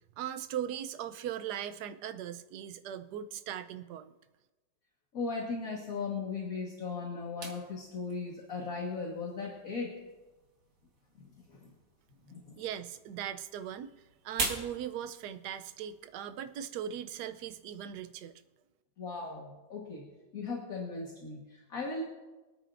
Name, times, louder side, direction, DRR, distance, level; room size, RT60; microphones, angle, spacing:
voice 1, 0.2-4.1 12.6-13.9 14.2-18.4, right 10 dB, 70° right, 11 dB, 1.1 m, -39 dB
voice 2, 5.1-10.0 11.2-11.7 12.2-12.6 19.0-20.1 20.3-22.0, left 4 dB, 50° left, -2 dB, 1.9 m, -38 dB
sound 1, 7.4-18.2, right 3 dB, 50° right, 1.9 m, -44 dB
24.5 x 9.1 x 2.6 m, 1.1 s
omnidirectional pair, 2.0 m